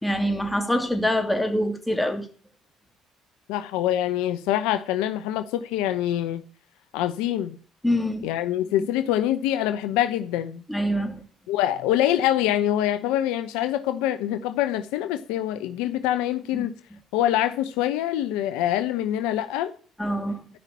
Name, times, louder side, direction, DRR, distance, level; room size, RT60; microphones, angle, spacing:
voice 1, 0.0-2.3 7.8-8.3 8.8-8.9 10.7-11.2 16.5-16.7 20.0-20.4, equal, 5° left, 3.1 m, -25 dB
voice 2, 3.5-6.4 6.9-7.6 8.2-10.6 11.5-16.7 17.1-19.7, left 12 dB, 80° left, 0.9 m, -25 dB
12.5 x 5.8 x 8.6 m
hypercardioid pair, 60°, 0 cm